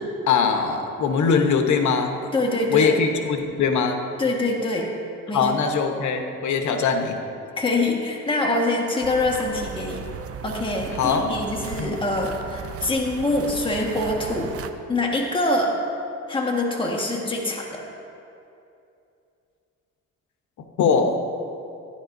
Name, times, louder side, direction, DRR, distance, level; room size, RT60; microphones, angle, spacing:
voice 1, 0.0-2.2 2.7-4.0 5.3-7.2 10.9-11.3 11.8-12.0 20.8-21.2, left 5 dB, 70° left, 5 dB, 1.0 m, -22 dB
voice 2, 2.3-2.9 4.2-4.9 5.3-5.4 7.6-10.0 10.4-14.5 14.9-15.8 16.3-17.8, left 2 dB, 15° left, -1 dB, 1.5 m, -24 dB
sound 1, 9.0-14.7, right 7 dB, 50° right, 0.6 m, -36 dB
13.5 x 10.5 x 2.6 m, 2.7 s
cardioid pair, 90°, 30 cm